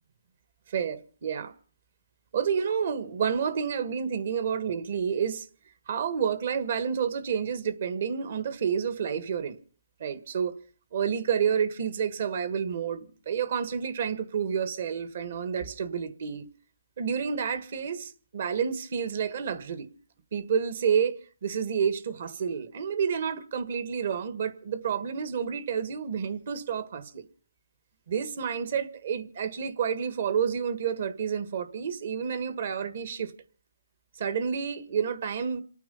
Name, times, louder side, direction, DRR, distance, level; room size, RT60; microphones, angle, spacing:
voice 1, 0.7-1.5 2.3-5.5 5.9-9.6 10.0-10.6 10.9-16.5 17.0-19.9 20.3-27.2 28.1-33.3 34.2-35.6, right 7 dB, 50° right, 1.6 m, -29 dB
28.0 x 9.3 x 5.6 m
hypercardioid pair, 160°, 0 cm